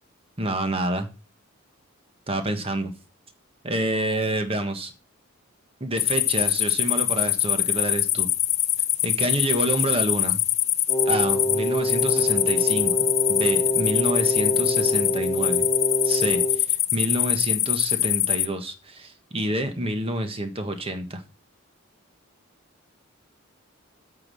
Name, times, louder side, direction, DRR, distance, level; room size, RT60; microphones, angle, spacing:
voice 1, 0.4-1.1 2.3-2.9 3.6-4.9 5.8-8.3 9.0-10.4 11.0-12.9 13.3-15.7 16.0-21.2, right 1 dB, 25° right, 7 dB, 1.4 m, -28 dB
sound 1, 6.0-18.5, left 13 dB, 30° left, 0.5 m, -24 dB
Wind instrument woodwind instrument, 10.9-16.6, equal, 10° left, 1.3 m, -26 dB
8.7 x 6.0 x 6.2 m, 0.32 s
head